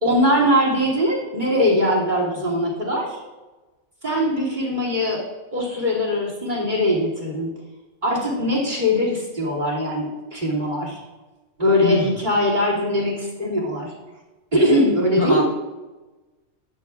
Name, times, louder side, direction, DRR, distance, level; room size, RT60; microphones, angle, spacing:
voice 1, 0.0-3.2 4.0-5.2 5.5-7.5 8.0-11.0 11.6-13.9 14.5-15.4, equal, 35° right, -3 dB, 2.8 m, -21 dB
voice 2, 11.8-12.1 15.2-15.4, left 3 dB, 45° left, -1 dB, 1.3 m, -24 dB
14.0 x 9.4 x 2.4 m, 1.2 s
omnidirectional pair, 1.4 m